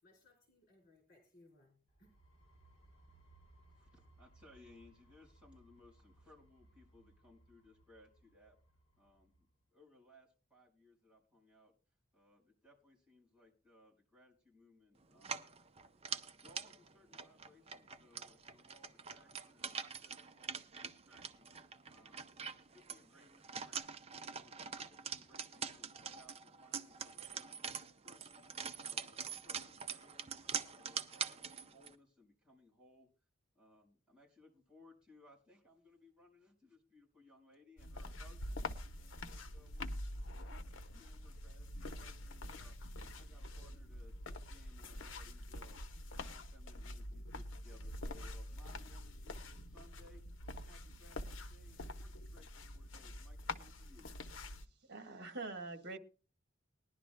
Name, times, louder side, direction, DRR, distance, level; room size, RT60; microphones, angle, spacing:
voice 1, 0.0-2.1, left 2 dB, 55° left, -1 dB, 4.9 m, -66 dB
sound 1, 1.9-9.5, right 1 dB, 35° left, 4.1 m, -66 dB
voice 2, 3.7-8.6 9.0-9.5 9.7-11.7 12.1-15.5 16.3-27.6 28.0-30.4 30.7-33.1 33.5-38.6 39.0-39.9 40.3-54.1, left 2 dB, 5° right, -4 dB, 5.1 m, -65 dB
sound 2, 15.2-31.9, right 6 dB, 30° right, 0.6 m, -45 dB
sound 3, 37.8-54.7, left 1 dB, 80° left, 0.9 m, -46 dB
voice 3, 54.9-56.0, right 3 dB, 60° right, 5 dB, 1.5 m, -44 dB
20.5 x 11.0 x 2.2 m, 0.35 s
head